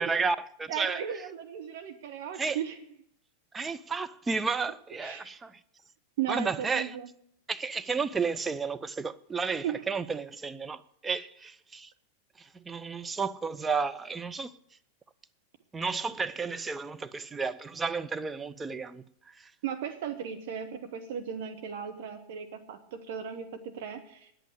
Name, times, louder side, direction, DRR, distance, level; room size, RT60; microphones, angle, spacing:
voice 1, 0.0-1.0 2.3-2.6 3.5-5.5 6.3-7.0 7.5-11.9 12.4-14.5 15.7-19.0 19.4-19.5, right 4 dB, 15° right, 0.6 m, -32 dB
voice 2, 0.7-2.8 5.0-5.3 6.2-7.1 9.4-9.8 11.1-11.2 19.6-24.3, right 9 dB, 55° right, 1.1 m, -36 dB
10.0 x 8.4 x 9.8 m
figure-of-eight pair, 90°, 0 cm